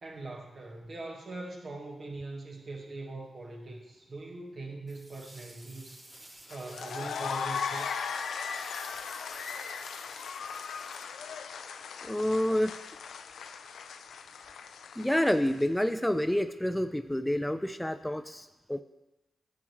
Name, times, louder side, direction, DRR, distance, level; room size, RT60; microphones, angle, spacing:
voice 1, 0.0-6.0 6.5-8.0, right 2 dB, 60° right, -1 dB, 1.6 m, -41 dB
sound 1, 4.9-11.6, right 1 dB, 35° right, 2.9 m, -52 dB
sound 2, 6.5-15.8, left 6 dB, 80° left, 0.4 m, -38 dB
voice 2, 12.0-12.7 15.0-18.8, left 1 dB, 10° left, 10 dB, 0.4 m, -28 dB
9.6 x 7.2 x 3.1 m, 1.0 s
supercardioid pair, 40°, 0 cm